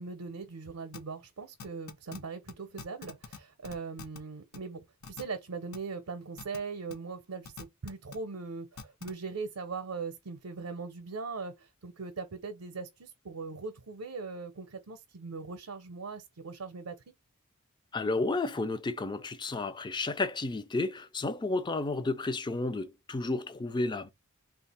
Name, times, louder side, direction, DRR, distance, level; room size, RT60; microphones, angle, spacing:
voice 1, 0.0-17.0, right 4 dB, 80° right, 0.6 m, -40 dB
sound 1, 0.9-1.0 1.6-2.2 2.5-2.6 2.8-3.4 3.6-4.2 4.5-4.6 5.0-5.2 5.7-5.8 6.4-6.6 6.9-7.0 7.4-8.2 8.8-9.1, left 5 dB, 80° left, 0.8 m, -43 dB
voice 2, 17.9-24.1, left 2 dB, 20° left, 0.4 m, -32 dB
3.2 x 2.4 x 4.2 m
head